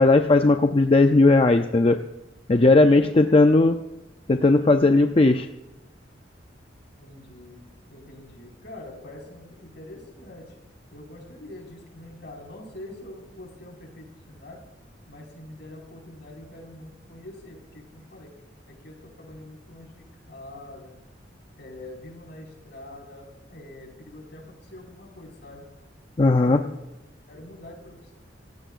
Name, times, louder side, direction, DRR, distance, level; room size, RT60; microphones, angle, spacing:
voice 1, 0.0-2.0 2.5-3.8 4.3-5.5 26.2-26.6, left 2 dB, 30° left, 6 dB, 0.5 m, -17 dB
voice 2, 3.0-3.4 7.0-7.6 7.9-10.4 10.9-14.6 15.1-18.3 18.7-20.9 21.6-25.6 26.2-26.9 27.3-28.2, left 1 dB, 60° left, -1 dB, 5.2 m, -44 dB
27.5 x 16.0 x 2.5 m, 0.97 s
head